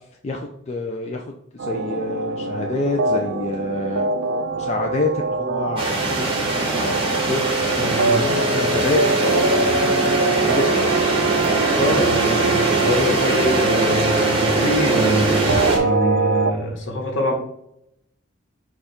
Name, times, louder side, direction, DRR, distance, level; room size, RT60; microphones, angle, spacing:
voice 1, 0.2-4.1 4.5-11.0, left 2 dB, 30° left, 2 dB, 0.3 m, -28 dB
sound 1, 1.6-16.5, right 3 dB, 65° right, 0.4 m, -23 dB
sound 2, 5.8-15.8, right 2 dB, 25° right, 0.8 m, -23 dB
voice 2, 7.8-8.3 11.7-15.5 15.8-17.3, equal, 60° left, 1 dB, 1.1 m, -24 dB
5.0 x 2.4 x 4.2 m, 0.76 s
head